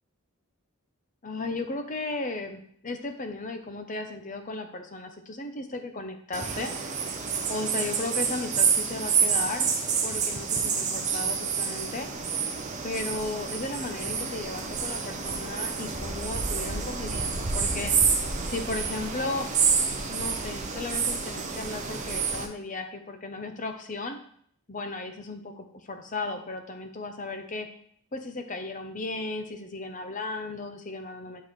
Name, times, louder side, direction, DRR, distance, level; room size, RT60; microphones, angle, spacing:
voice 1, 1.2-6.7 7.5-9.7 10.0-12.1 12.8-17.9 18.4-19.5 20.1-24.2 24.7-27.7 28.1-31.4, left 2 dB, 35° left, 6 dB, 0.7 m, -35 dB
sound 1, 6.3-22.5, right 6 dB, 35° right, 0.7 m, -28 dB
10.5 x 3.9 x 3.2 m, 0.63 s
head